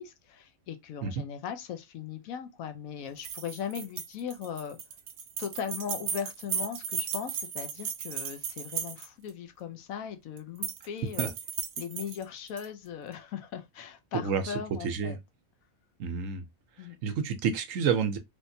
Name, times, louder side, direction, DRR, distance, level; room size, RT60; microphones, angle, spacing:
voice 1, 0.0-4.8 5.4-11.3 11.8-15.2 16.8-17.0, left 8 dB, 75° left, 1.0 m, -38 dB
sound 1, 3.2-9.3 10.4-10.9 11.1-12.7, right 7 dB, 85° right, 1.2 m, -36 dB
voice 2, 14.1-14.5 14.8-15.2 16.0-16.5 16.8-18.2, right 6 dB, 70° right, 1.0 m, -29 dB
3.5 x 2.8 x 2.6 m
omnidirectional pair, 1.5 m